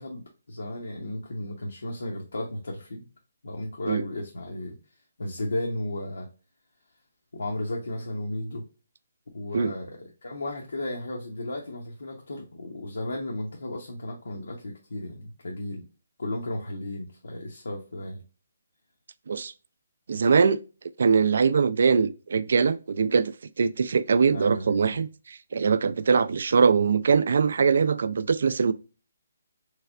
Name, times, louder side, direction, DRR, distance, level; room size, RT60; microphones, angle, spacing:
voice 1, 0.0-3.0 3.4-4.8 5.2-6.3 7.3-8.6 9.3-15.8 16.2-18.2 24.3-25.0, left 1 dB, 85° left, 0.8 m, -34 dB
voice 2, 20.1-20.6 21.0-23.3 23.6-28.7, right 5 dB, 65° right, 0.3 m, -22 dB
3.2 x 3.2 x 2.4 m
hypercardioid pair, 160°, 0 cm